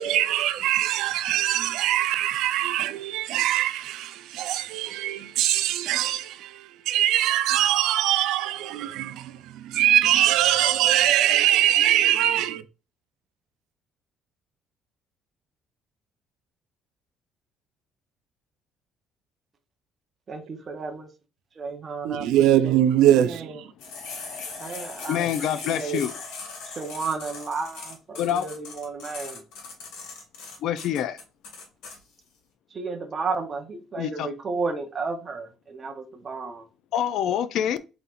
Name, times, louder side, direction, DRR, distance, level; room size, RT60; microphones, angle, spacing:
voice 1, 0.0-12.6 22.0-23.7, right 12 dB, 75° right, 0.4 m, -22 dB
voice 2, 20.3-21.1 21.6-22.7 23.2-23.5 24.6-26.0 26.7-29.4 32.7-36.6, right 4 dB, 25° right, 0.8 m, -33 dB
sound 1, 23.8-32.0, left 4 dB, 90° left, 1.7 m, -39 dB
voice 3, 25.1-26.1 28.2-28.5 30.6-31.2 34.0-34.3 36.9-37.8, left 10 dB, 55° left, 0.4 m, -26 dB
4.2 x 4.0 x 2.4 m
cardioid pair, 170°, 0 cm